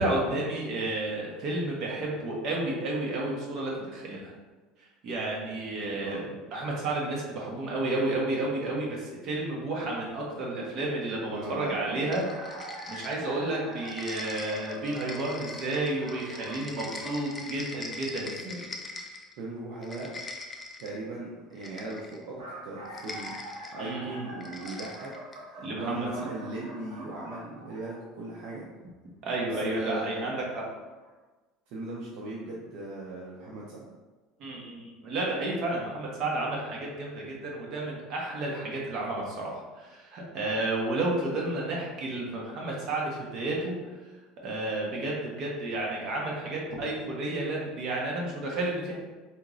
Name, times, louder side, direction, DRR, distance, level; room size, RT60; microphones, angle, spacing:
voice 1, 0.0-4.3 5.0-6.2 6.5-12.2 12.9-18.6 23.8-24.3 25.6-26.1 29.2-30.6 34.4-43.8 44.4-48.9, right 2 dB, 45° right, -3 dB, 1.0 m, -31 dB
voice 2, 5.8-6.3 10.6-10.7 11.3-12.1 19.4-20.1 20.8-23.3 23.7-25.1 25.5-28.6 29.6-30.2 31.7-33.8, right 2 dB, 65° right, -4 dB, 0.6 m, -38 dB
sound 1, 12.1-13.4 13.7-19.3 19.7-21.0 21.6-22.2 22.9-23.7 24.4-25.4, left 2 dB, 15° left, 0.4 m, -42 dB
sound 2, 12.2-17.2 22.1-28.2 29.3-29.5 30.5-30.6 31.0-31.1, right 1 dB, 90° right, 1.5 m, -44 dB
4.3 x 3.0 x 2.6 m, 1.3 s
cardioid pair, 145°, 0 cm